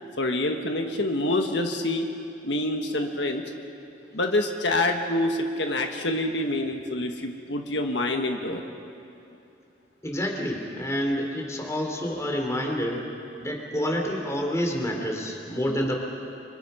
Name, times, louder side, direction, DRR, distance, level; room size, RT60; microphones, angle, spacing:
voice 1, 0.2-2.1 2.4-3.4 4.1-8.6, left 1 dB, 80° left, 4 dB, 1.5 m, -26 dB
voice 2, 10.0-13.0 13.4-16.0, equal, 15° left, 1 dB, 3.1 m, -28 dB
28.0 x 25.0 x 5.7 m, 2.7 s
head